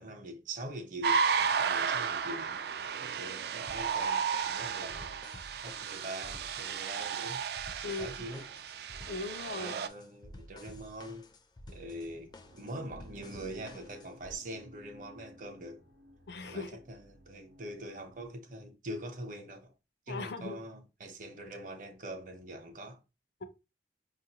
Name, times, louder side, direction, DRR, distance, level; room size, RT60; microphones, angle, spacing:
voice 1, 0.0-2.6 3.0-5.2 5.6-7.4 7.8-8.4 9.5-11.3 11.7-15.8 16.4-19.7 20.1-23.0, right 1 dB, 45° right, 0.8 m, -43 dB
sound 1, 1.0-9.9, right 6 dB, 60° right, 0.3 m, -33 dB
sound 2, 3.7-14.4, left 1 dB, 25° left, 0.4 m, -52 dB
voice 2, 9.1-9.8 16.3-16.8 20.1-20.6, left 3 dB, 70° left, 0.6 m, -38 dB
sound 3, 11.7-18.3, equal, 80° right, 0.7 m, -56 dB
5.2 x 2.5 x 2.9 m
head